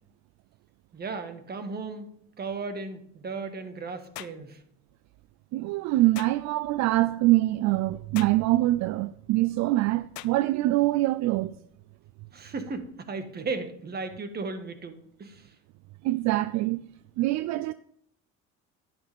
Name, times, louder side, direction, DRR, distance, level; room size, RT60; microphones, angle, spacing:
voice 1, 0.9-2.1 2.4-4.6 12.3-15.5, right 4 dB, 30° right, 1.6 m, -35 dB
sound 1, 4.1-4.4 6.1-6.4 8.1-8.4 10.1-10.4, left 17 dB, 75° left, 0.7 m, -41 dB
voice 2, 5.5-11.6 16.0-16.8 17.2-17.7, right 17 dB, 65° right, 0.5 m, -24 dB
11.0 x 10.5 x 3.5 m
cardioid pair, 110°, 30 cm